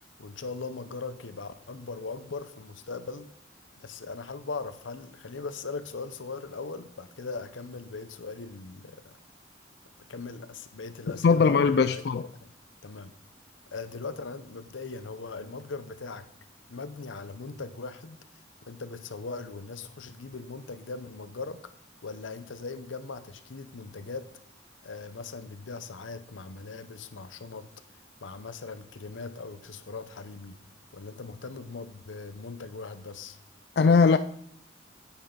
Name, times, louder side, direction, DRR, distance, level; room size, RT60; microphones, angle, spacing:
voice 1, 0.2-3.3 3.8-9.2 10.1-12.0 12.4-12.5 12.8-13.1 13.7-16.3 16.7-18.2 18.6-21.7 22.0-24.3 24.8-27.7 28.2-30.6 30.9-33.4, left 4 dB, 90° left, 0.7 m, -39 dB
voice 2, 11.1-12.3 33.8-34.2, left 5 dB, 55° left, 0.3 m, -20 dB
9.5 x 9.1 x 3.9 m
head